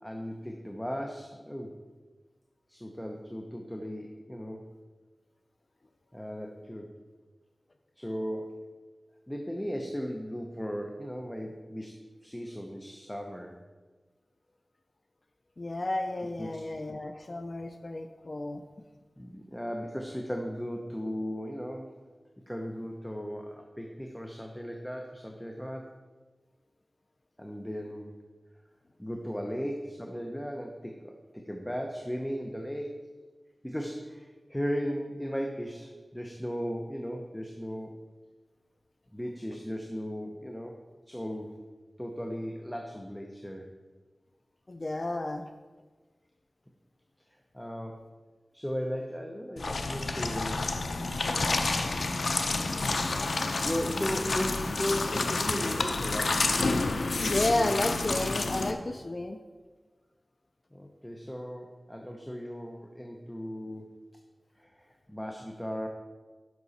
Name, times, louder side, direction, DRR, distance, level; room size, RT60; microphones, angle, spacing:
voice 1, 0.0-1.8 2.7-4.7 6.1-6.9 8.0-8.7 9.3-13.6 16.4-16.6 19.2-21.9 22.5-25.9 27.4-28.1 29.0-33.1 33.6-38.0 39.1-40.8 41.1-41.6 42.0-43.7 47.5-48.0 48.5-50.8 53.6-56.5 60.7-63.9 64.6-65.9, equal, 5° left, 2 dB, 0.8 m, -36 dB
voice 2, 15.6-18.6 44.7-45.5 57.2-59.4, left 2 dB, 45° left, 7 dB, 0.5 m, -32 dB
sound 1, 49.6-58.7, left 3 dB, 90° left, 0.6 m, -29 dB
10.5 x 6.3 x 4.1 m, 1.3 s
wide cardioid pair, 70°, 0 cm